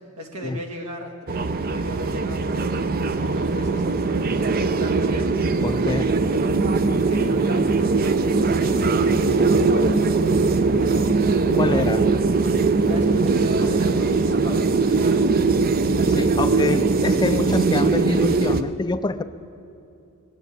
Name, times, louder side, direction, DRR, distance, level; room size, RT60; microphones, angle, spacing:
voice 1, 0.2-4.4 4.7-5.3 6.9-11.2 12.8-15.5, equal, 85° right, 2 dB, 2.0 m, -36 dB
sound 1, 1.3-18.6, right 3 dB, 40° right, 0.5 m, -20 dB
voice 2, 5.6-6.1 11.6-12.1 16.1-19.2, left 3 dB, 20° left, 13 dB, 0.3 m, -26 dB
20.5 x 8.0 x 8.4 m, 2.6 s
head